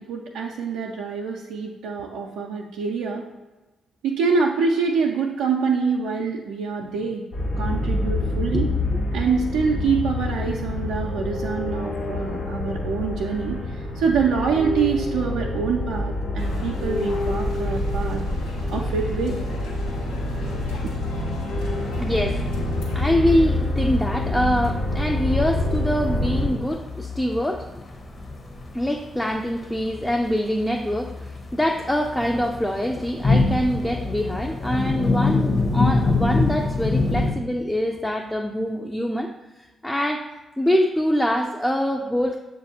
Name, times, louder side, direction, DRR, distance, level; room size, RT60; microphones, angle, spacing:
voice 1, 0.0-3.2 4.0-7.2 7.6-8.7 9.1-18.2 18.7-19.4, right 5 dB, 80° right, -1 dB, 0.3 m, -25 dB
sound 1, 7.3-26.5, left 2 dB, 70° left, 1.3 m, -27 dB
sound 2, 16.4-23.1, equal, 90° left, 0.8 m, -35 dB
voice 2, 22.0-22.5 22.9-27.8 28.7-39.3 39.6-40.3 40.6-42.4, equal, 10° left, 2 dB, 0.4 m, -24 dB
sound 3, 22.8-37.3, left 3 dB, 40° left, 0.9 m, -26 dB
6.8 x 2.5 x 2.7 m, 1.1 s
hypercardioid pair, 40°, 0 cm